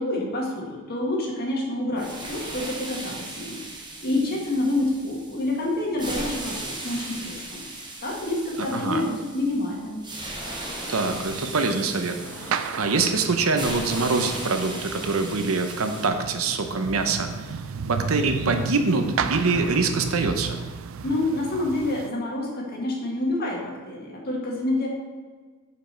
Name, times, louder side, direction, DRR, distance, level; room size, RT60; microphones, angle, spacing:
voice 1, 0.0-3.6 4.0-7.6 8.0-10.0 21.0-24.9, left 1 dB, 50° left, -2 dB, 1.8 m, -27 dB
sound 1, 2.0-16.1, right 2 dB, 20° right, 1.0 m, -37 dB
voice 2, 8.6-9.0 10.9-17.6 17.9-20.6, right 3 dB, 85° right, 7 dB, 0.8 m, -25 dB
sound 2, 10.2-11.2 12.1-13.0 13.6-14.6, left 1 dB, 10° left, 1.7 m, -41 dB
sound 3, 11.1-22.1, right 6 dB, 65° right, 0.4 m, -34 dB
7.1 x 5.2 x 4.4 m, 1.4 s
head